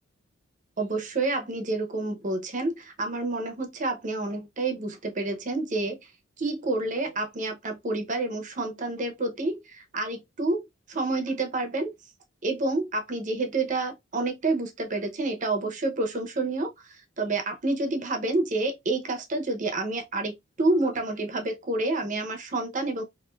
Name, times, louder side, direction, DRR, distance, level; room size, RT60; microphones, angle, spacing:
voice 1, 0.8-6.1 6.4-11.9 12.4-23.0, right 2 dB, 40° right, 0.6 m, -29 dB
3.1 x 2.5 x 2.2 m
head